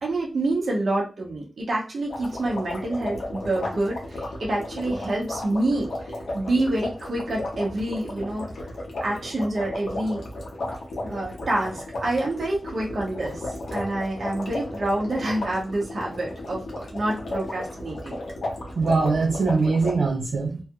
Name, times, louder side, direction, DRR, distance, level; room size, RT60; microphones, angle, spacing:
voice 1, 0.0-8.4 9.0-10.2 11.0-13.4 13.7-18.2, right 2 dB, 65° right, -2 dB, 0.9 m, -27 dB
sound 1, 2.1-19.9, left 1 dB, 85° left, 1.1 m, -34 dB
voice 2, 18.8-20.6, right 4 dB, 85° right, 1 dB, 0.4 m, -22 dB
3.2 x 2.3 x 2.9 m, 0.35 s
wide cardioid pair, 115°, 0 cm